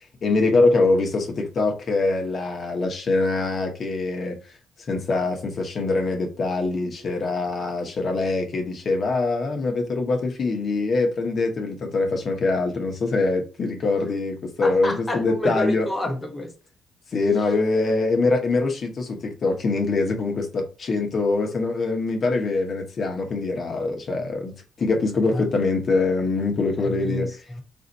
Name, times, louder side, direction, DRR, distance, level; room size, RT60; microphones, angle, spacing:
voice 1, 0.2-4.5 4.9-15.9 17.1-24.5 24.8-27.3, left 3 dB, 50° left, 1.0 m, -23 dB
voice 2, 14.6-16.5 25.3-25.5 26.8-27.6, left 1 dB, 15° left, 0.9 m, -29 dB
4.0 x 2.7 x 4.1 m
cardioid pair, 90°, 0 cm